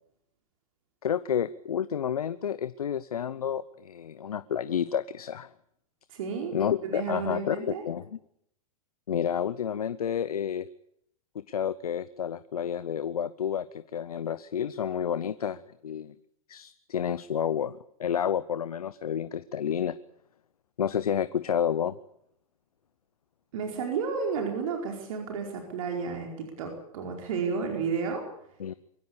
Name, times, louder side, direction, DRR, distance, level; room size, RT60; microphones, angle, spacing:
voice 1, 1.0-5.5 6.5-8.2 9.1-10.7 11.3-16.1 16.5-20.0 20.8-22.0 28.6-28.7, left 8 dB, 85° left, 16 dB, 0.8 m, -30 dB
voice 2, 6.1-7.8 23.5-28.3, right 5 dB, 65° right, 2 dB, 4.7 m, -32 dB
23.0 x 16.5 x 8.5 m, 0.74 s
hypercardioid pair, 110°, 19 cm